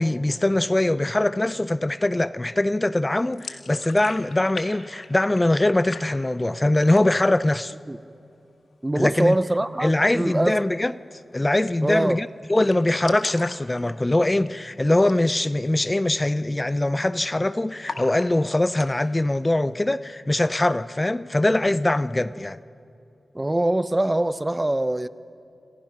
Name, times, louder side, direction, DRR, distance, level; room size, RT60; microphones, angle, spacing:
voice 1, 0.0-7.7 9.0-9.4 9.8-10.9 11.3-22.6, left 1 dB, 25° left, 0.6 m, -22 dB
sound 1, 3.3-4.7 4.9-5.6 5.9-6.5 6.8-7.3 7.7-7.8 8.1-8.7 10.4-10.6 10.9-11.0 11.2-11.3 11.7-12.0 12.3-12.4 12.6-14.6 15.0-15.2 15.6-15.7 16.2-16.5 16.8-17.4 17.8-18.9, left 4 dB, 80° left, 2.0 m, -39 dB
voice 2, 8.8-10.6 11.8-12.2 23.3-25.1, right 1 dB, 20° right, 0.7 m, -23 dB
28.5 x 26.0 x 6.0 m
cardioid pair, 60°, 0 cm